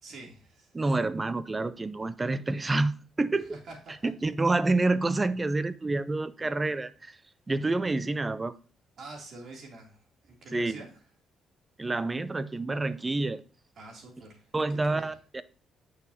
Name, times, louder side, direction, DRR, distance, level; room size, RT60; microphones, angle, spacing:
voice 1, 0.0-0.7 3.4-4.1 9.0-11.0 13.8-15.1, right 2 dB, 60° right, 2.9 m, -47 dB
voice 2, 0.7-3.5 4.0-7.2 7.5-8.5 10.5-10.8 11.8-13.4 14.5-15.4, right 2 dB, 25° right, 0.5 m, -28 dB
8.8 x 6.4 x 2.8 m
cardioid pair, 90°, 0 cm